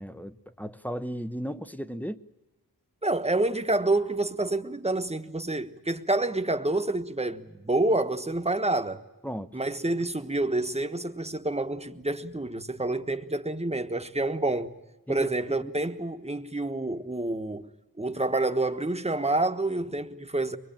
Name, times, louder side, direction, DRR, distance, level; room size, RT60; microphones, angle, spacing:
voice 1, 0.0-2.2 9.2-9.5 15.1-15.7, equal, 5° left, 0.8 m, -35 dB
voice 2, 3.0-9.0 9.5-14.7 15.1-17.7 18.0-20.6, right 2 dB, 15° right, 1.2 m, -28 dB
24.0 x 21.0 x 8.9 m
wide cardioid pair, 55°, 38 cm